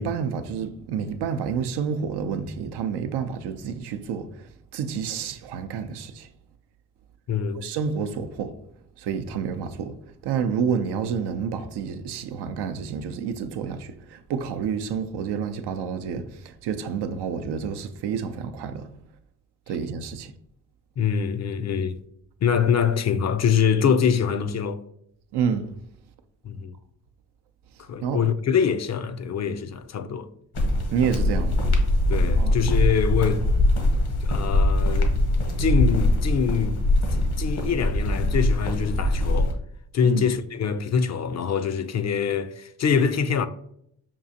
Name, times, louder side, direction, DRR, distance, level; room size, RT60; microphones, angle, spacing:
voice 1, 0.0-6.3 7.5-8.6 9.0-10.0 10.2-18.9 19.7-20.3 25.3-25.7 28.0-28.2 30.9-31.6 32.4-32.8 40.0-40.3, right 6 dB, 80° right, 0.5 m, -29 dB
voice 2, 7.3-7.6 21.0-22.0 22.4-24.8 26.4-26.7 27.8-30.3 32.1-33.5 34.2-35.2 35.6-36.8 37.1-39.5 39.9-43.5, left 7 dB, 45° left, 0.4 m, -24 dB
sound 1, 30.5-39.5, left 1 dB, 75° left, 0.9 m, -22 dB
5.3 x 2.4 x 2.7 m
supercardioid pair, 45°, 39 cm